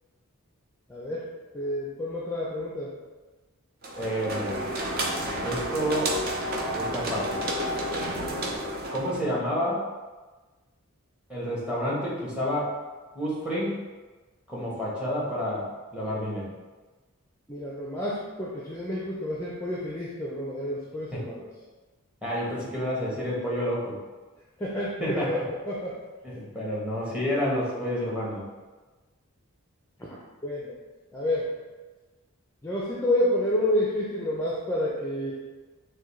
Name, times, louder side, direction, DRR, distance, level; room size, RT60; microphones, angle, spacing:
voice 1, 0.9-1.3 1.5-2.9 17.5-21.5 24.6-25.9 30.4-30.7 31.1-31.5 32.6-35.3, left 1 dB, 10° left, -6 dB, 0.5 m, -29 dB
sound 1, 3.8-9.3, right 1 dB, 45° right, 0.5 m, -30 dB
voice 2, 4.0-4.6 5.4-6.1 6.7-7.4 8.9-9.8 11.3-12.8 13.1-13.8 14.5-15.7 15.9-16.5 21.1-21.2 22.2-23.9 25.0-25.4 26.2-28.4, equal, 5° right, -7 dB, 1.1 m, -29 dB
6.1 x 2.2 x 3.1 m, 1.3 s
head